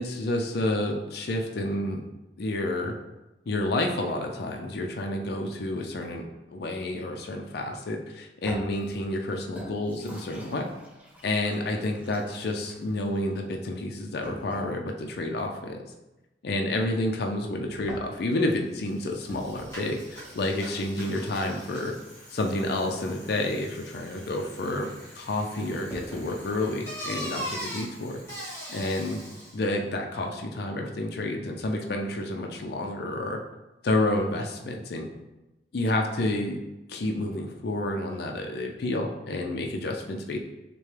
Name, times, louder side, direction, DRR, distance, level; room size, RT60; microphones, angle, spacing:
voice 1, 0.0-2.0 2.4-2.9 3.5-6.2 6.5-10.6 11.2-15.8 16.4-21.9 22.3-28.2 28.7-29.2 29.5-33.4 33.8-35.1 35.7-36.6 36.9-40.4, left 1 dB, 65° left, 2 dB, 0.5 m, -29 dB
sound 1, 8.4-14.8 17.5-26.3, equal, 10° right, 1.4 m, -47 dB
Bicycle, 18.5-18.6 18.8-29.6, equal, 15° left, 1.5 m, -42 dB
6.4 x 2.2 x 3.2 m, 1.0 s
head